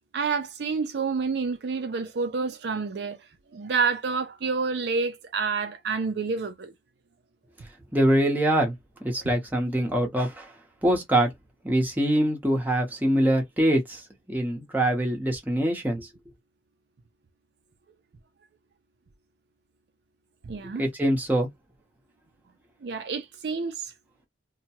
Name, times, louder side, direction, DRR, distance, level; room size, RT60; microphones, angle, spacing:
voice 1, 0.1-3.2 3.5-6.7 20.4-20.8 22.8-23.9, right 4 dB, 60° right, 0.4 m, -28 dB
voice 2, 7.9-8.7 9.0-10.5 10.8-11.3 11.6-14.0 14.3-16.1 20.8-21.5, right 1 dB, 10° right, 0.8 m, -24 dB
2.8 x 2.1 x 2.8 m
head